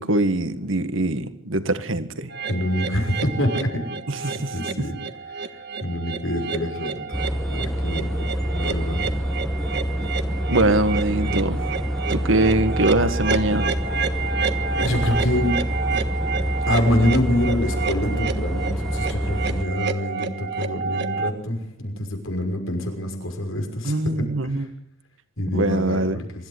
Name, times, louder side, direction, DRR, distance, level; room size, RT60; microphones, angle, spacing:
voice 1, 0.0-2.3 4.1-4.9 10.0-10.1 10.5-11.6 12.1-13.7 23.8-24.7 25.5-26.2, right 2 dB, 75° right, 1.7 m, -23 dB
sound 1, 2.3-21.3, right 5 dB, 55° right, 1.4 m, -30 dB
voice 2, 2.5-4.0 4.2-5.0 5.3-9.1 14.8-15.6 15.9-16.1 16.7-24.6 25.4-26.3, left 1 dB, 80° left, 5.9 m, -26 dB
sound 2, 7.1-19.6, equal, ahead, 1.3 m, -26 dB
24.5 x 14.0 x 8.0 m
head